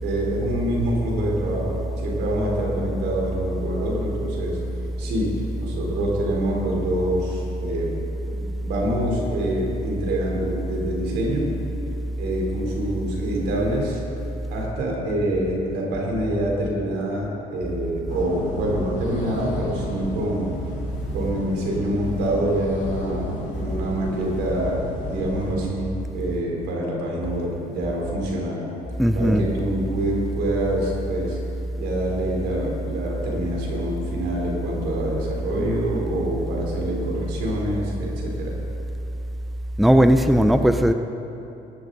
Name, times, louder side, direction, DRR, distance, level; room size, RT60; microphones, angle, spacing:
voice 1, 0.0-4.6 5.0-8.0 8.3-11.5 12.2-14.0 14.5-20.5 21.1-28.7 29.1-31.4 31.8-38.6, right 1 dB, 85° right, -2 dB, 3.7 m, -26 dB
sound 1, 18.1-25.6, left 2 dB, 45° left, 3.4 m, -32 dB
voice 2, 29.0-29.4 39.8-40.9, equal, ahead, 8 dB, 0.5 m, -17 dB
19.5 x 12.0 x 4.0 m, 3.0 s
cardioid pair, 110°, 17 cm